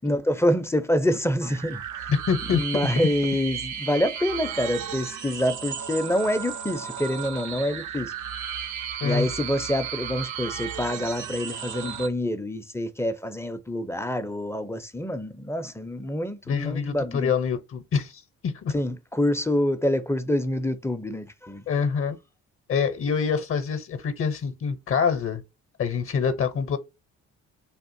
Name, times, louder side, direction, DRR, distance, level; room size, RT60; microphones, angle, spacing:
voice 1, 0.0-2.1 2.4-8.1 9.0-17.3 18.7-21.7, left 1 dB, 10° left, 0.4 m, -26 dB
sound 1, 1.4-12.1, right 8 dB, 75° right, 0.6 m, -34 dB
voice 2, 2.1-2.6 9.0-9.3 16.5-18.7 21.7-22.2 22.7-25.4 25.8-26.8, left 6 dB, 45° left, 0.6 m, -25 dB
3.5 x 2.4 x 2.6 m
cardioid pair, 90°, 30 cm